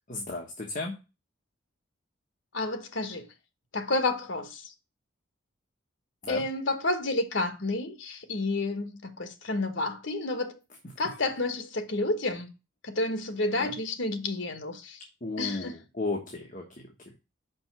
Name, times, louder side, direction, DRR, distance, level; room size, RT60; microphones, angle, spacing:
voice 1, 0.1-0.9 6.2-6.4 13.5-13.7 15.2-16.7, left 2 dB, 40° left, 1.2 m, -34 dB
voice 2, 2.5-3.3 3.7-4.7 6.3-10.6 11.0-12.5 12.8-15.0 15.4-15.8, left 2 dB, 65° left, 1.2 m, -30 dB
5.4 x 5.3 x 6.0 m
head